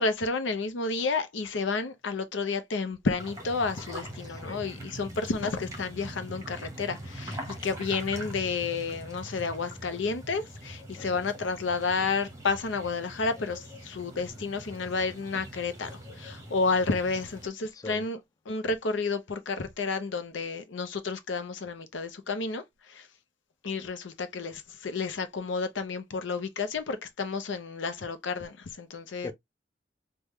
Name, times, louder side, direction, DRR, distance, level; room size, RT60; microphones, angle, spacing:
voice 1, 0.0-18.2 18.5-23.1 23.6-29.3, left 4 dB, 80° left, 0.6 m, -31 dB
sound 1, 3.2-17.5, right 1 dB, 15° right, 0.9 m, -43 dB
voice 2, 4.2-4.6 11.0-11.2 17.7-18.0 29.2-29.3, left 3 dB, 20° left, 0.5 m, -41 dB
3.5 x 2.2 x 3.0 m
head